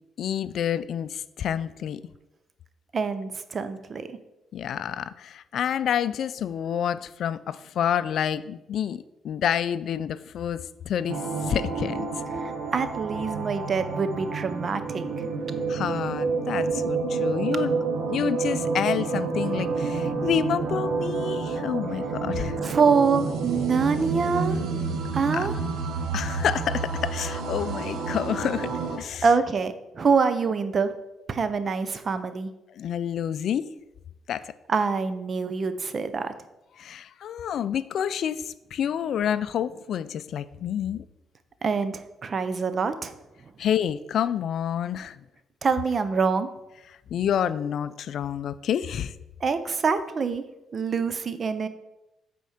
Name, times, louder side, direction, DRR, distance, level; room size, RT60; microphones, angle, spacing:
voice 1, 0.2-2.0 4.5-12.1 15.7-17.7 18.1-22.6 25.3-25.5 26.1-28.7 29.0-29.3 32.8-33.7 34.3-34.5 36.8-41.0 43.6-45.2 46.9-49.1, left 9 dB, 70° left, 15 dB, 0.3 m, -28 dB
voice 2, 2.9-4.2 12.4-15.0 22.6-24.6 25.1-25.6 29.2-30.9 31.3-32.5 34.7-36.3 41.6-43.1 45.6-46.5 49.4-50.4 50.7-51.7, right 5 dB, 45° right, 11 dB, 0.7 m, -25 dB
sound 1, 11.1-29.0, right 4 dB, 85° right, 1.0 m, -29 dB
8.2 x 4.3 x 5.0 m, 0.95 s
cardioid pair, 90°, 0 cm